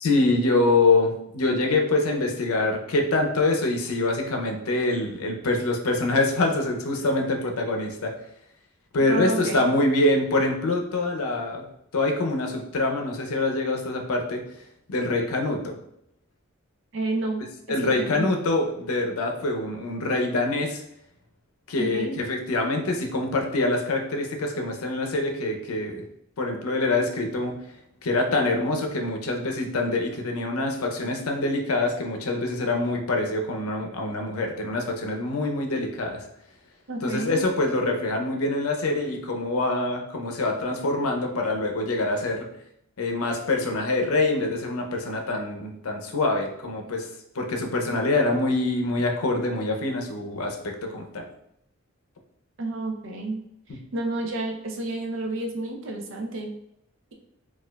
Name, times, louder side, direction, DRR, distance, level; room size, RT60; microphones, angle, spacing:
voice 1, 0.0-8.1 8.9-11.7 11.9-14.4 14.9-15.7 17.7-20.8 21.7-26.0 26.4-27.5 28.0-36.3 37.0-42.5 43.0-47.1 47.3-51.3, left 2 dB, 80° left, 2 dB, 0.6 m, -25 dB
voice 2, 9.1-9.6 16.9-17.5 17.8-18.3 21.8-22.2 36.9-37.4 52.6-53.4 53.7-56.5, right 2 dB, 60° right, 3 dB, 0.5 m, -30 dB
4.3 x 2.4 x 2.2 m, 0.76 s
head